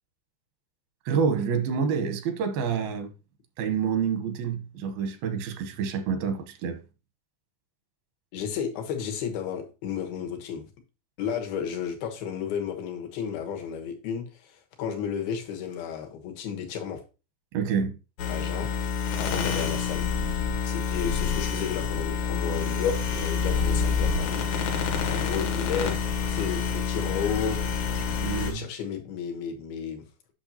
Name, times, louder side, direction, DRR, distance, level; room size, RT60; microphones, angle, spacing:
voice 1, 1.1-3.1 3.6-6.8 17.5-17.9 28.2-28.6, right 6 dB, 85° right, 2.8 m, -27 dB
voice 2, 8.3-10.7 11.2-17.0 18.3-18.7 19.2-20.1 20.6-24.4 25.1-27.6 28.3-30.3, left 7 dB, 90° left, 3.2 m, -33 dB
sound 1, 18.2-28.5, left 6 dB, 65° left, 2.2 m, -27 dB
8.5 x 6.2 x 2.8 m
omnidirectional pair, 4.3 m